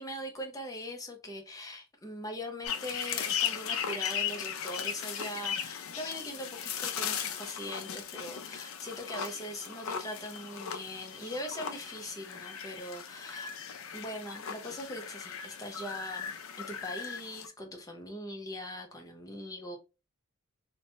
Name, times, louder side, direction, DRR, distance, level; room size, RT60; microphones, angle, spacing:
voice 1, 0.0-13.5 13.9-16.3 16.6-19.8, left 1 dB, 15° left, 0.5 m, -41 dB
Girafe-En train de manger+amb oiseaux, 2.6-17.5, left 8 dB, 80° left, 0.4 m, -37 dB
2.9 x 2.1 x 2.7 m
head